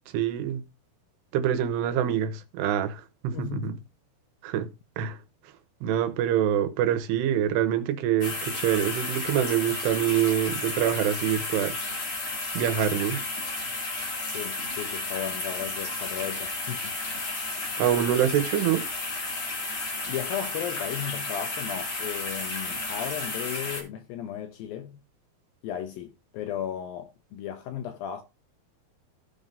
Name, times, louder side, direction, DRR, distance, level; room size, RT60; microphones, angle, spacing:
voice 1, 0.1-0.6 1.3-3.7 4.4-4.7 5.0-5.2 5.8-11.8 12.5-13.2 17.8-18.9, right 10 dB, 90° right, 3.0 m, -25 dB
voice 2, 3.3-3.7 14.3-17.0 20.1-25.0 25.6-28.2, left 10 dB, 75° left, 2.3 m, -35 dB
sound 1, 8.2-23.8, left 2 dB, 40° left, 2.8 m, -32 dB
15.5 x 5.4 x 2.7 m
omnidirectional pair, 4.8 m